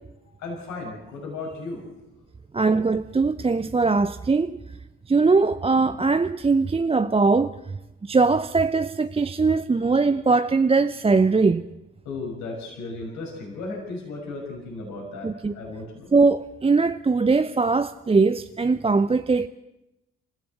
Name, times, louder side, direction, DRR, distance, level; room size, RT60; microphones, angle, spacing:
voice 1, 0.4-1.9 5.8-5.9 12.0-16.1, left 3 dB, 70° left, 6.0 m, -35 dB
voice 2, 2.5-4.6 5.1-7.6 8.0-11.6 15.2-15.5 16.1-19.5, right 4 dB, 20° right, 0.8 m, -21 dB
27.5 x 15.5 x 7.8 m
hypercardioid pair, 45°, 30 cm